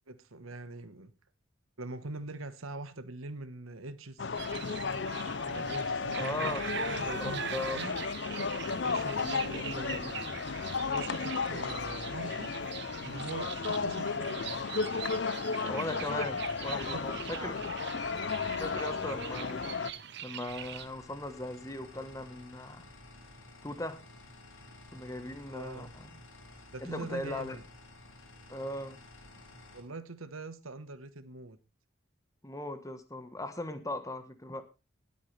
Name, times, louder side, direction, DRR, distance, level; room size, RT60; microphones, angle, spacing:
voice 1, 0.1-1.1 1.8-4.3 5.5-6.6 6.9-7.9 8.8-10.2 10.9-12.6 13.0-14.6 16.9-17.6 25.5-25.9 26.7-27.6 29.7-31.6, right 2 dB, 85° right, 1.3 m, -43 dB
sound 1, 4.2-19.9, left 4 dB, 55° left, 0.6 m, -34 dB
sound 2, 4.4-20.9, right 8 dB, 55° right, 1.0 m, -43 dB
voice 2, 6.1-6.6 7.2-7.8 9.6-9.7 10.2-10.4 15.6-17.6 18.6-19.7 20.2-22.8 23.6-24.0 24.9-26.2 26.8-27.6 28.5-29.0 32.4-34.6, left 1 dB, 15° left, 1.2 m, -38 dB
sound 3, 20.5-29.8, left 2 dB, 75° left, 4.3 m, -53 dB
19.5 x 8.5 x 3.3 m
head